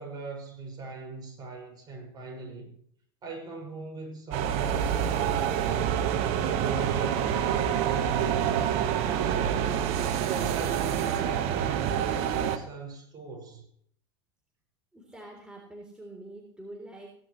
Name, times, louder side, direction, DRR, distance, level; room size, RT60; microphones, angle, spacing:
voice 1, 0.0-2.7 3.2-6.0 6.4-9.7 10.3-13.6, right 4 dB, 35° right, 5.7 m, -40 dB
sound 1, 4.3-12.6, right 9 dB, 55° right, 1.2 m, -27 dB
voice 2, 14.9-17.1, right 1 dB, 5° right, 3.5 m, -45 dB
17.5 x 11.0 x 3.1 m
hypercardioid pair, 105°, 12 cm